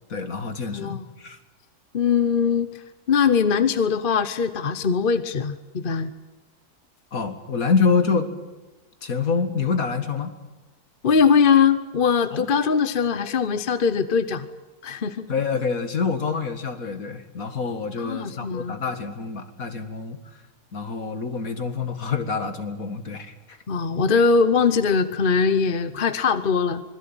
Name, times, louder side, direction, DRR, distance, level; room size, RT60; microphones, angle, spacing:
voice 1, 0.1-1.4 7.1-8.3 9.0-10.3 12.3-12.5 15.3-20.2 20.7-23.6, left 5 dB, 60° left, 8 dB, 2.4 m, -26 dB
voice 2, 0.7-1.1 1.9-2.8 3.1-6.1 11.0-14.5 14.8-15.3 18.0-18.8 23.7-26.8, left 6 dB, 40° left, 12 dB, 1.0 m, -21 dB
25.5 x 21.0 x 9.0 m, 1.1 s
omnidirectional pair, 1.6 m